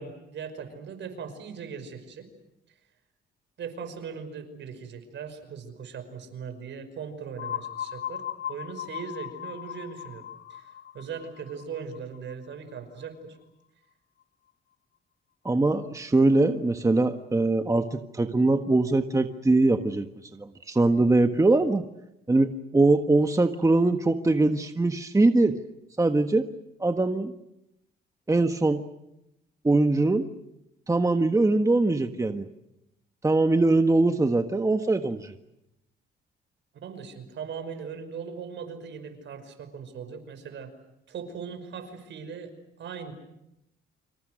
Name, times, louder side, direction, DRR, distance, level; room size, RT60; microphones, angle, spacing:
voice 1, 0.0-2.3 3.6-13.4 36.7-40.7 41.1-42.5 42.8-43.1, right 6 dB, 70° right, 9 dB, 5.5 m, -39 dB
sound 1, 7.4-13.1, left 10 dB, 80° left, 1.8 m, -38 dB
voice 2, 15.4-20.1 20.3-21.8 22.3-25.6 26.0-26.5 26.8-27.3 28.3-28.8 29.6-30.3 30.9-32.5 33.2-35.3, right 2 dB, 15° right, 6 dB, 1.5 m, -22 dB
29.5 x 26.5 x 6.4 m, 0.84 s
cardioid pair, 90°, 20 cm